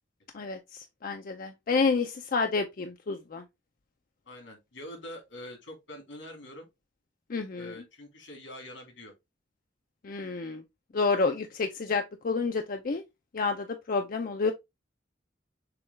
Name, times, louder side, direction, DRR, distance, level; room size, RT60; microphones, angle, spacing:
voice 1, 1.0-3.4 7.3-7.7 10.0-10.6 10.9-13.0 13.3-14.5, left 4 dB, 50° left, 0.5 m, -29 dB
voice 2, 4.2-6.7 7.6-9.1, left 1 dB, 85° left, 2.4 m, -45 dB
6.7 x 2.3 x 3.3 m
head